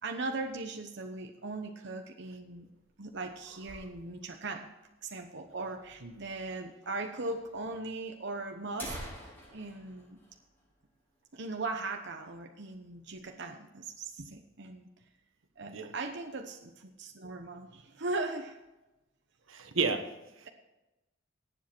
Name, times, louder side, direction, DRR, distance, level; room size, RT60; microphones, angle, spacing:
voice 1, 0.0-2.7 3.0-4.7 5.0-10.2 11.3-14.9 15.6-18.6, right 3 dB, 60° right, 4 dB, 1.0 m, -39 dB
sound 1, 2.6-4.4 4.7-4.8 5.0-5.1 5.8-5.9 6.8-6.9 7.3-7.4 8.1-8.2 8.6-11.2 11.5-11.6 12.0-12.3 12.7-13.3, equal, 10° left, 4.1 m, -47 dB
voice 2, 19.5-20.5, right 4 dB, 90° right, 7 dB, 1.4 m, -33 dB
18.5 x 7.5 x 4.5 m, 1.0 s
head